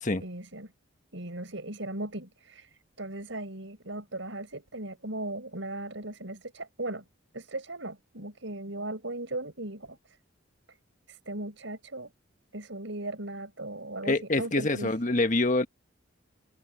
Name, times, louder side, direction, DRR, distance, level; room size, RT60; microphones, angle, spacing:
voice 1, 0.2-0.7 1.1-7.0 7.3-10.2 10.7-10.8 11.1-12.1 12.5-14.9, right 2 dB, 65° right, 5.6 m, -38 dB
voice 2, 14.0-15.7, left 2 dB, 40° left, 1.4 m, -26 dB
head